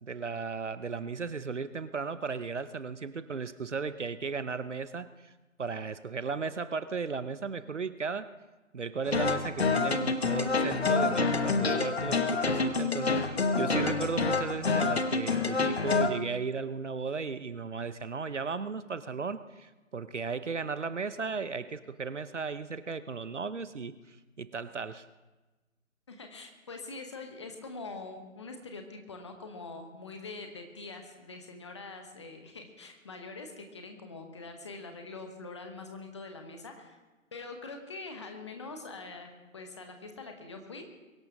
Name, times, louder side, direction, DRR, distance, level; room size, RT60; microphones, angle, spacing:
voice 1, 0.0-5.3 5.6-8.3 8.7-25.0, right 5 dB, 60° right, 14 dB, 0.7 m, -35 dB
sound 1, 9.1-16.1, left 4 dB, 50° left, 1.1 m, -27 dB
voice 2, 26.1-37.0 37.3-40.8, left 3 dB, 20° left, 5 dB, 1.1 m, -44 dB
22.5 x 11.5 x 3.7 m, 1.1 s
figure-of-eight pair, 150°, 41 cm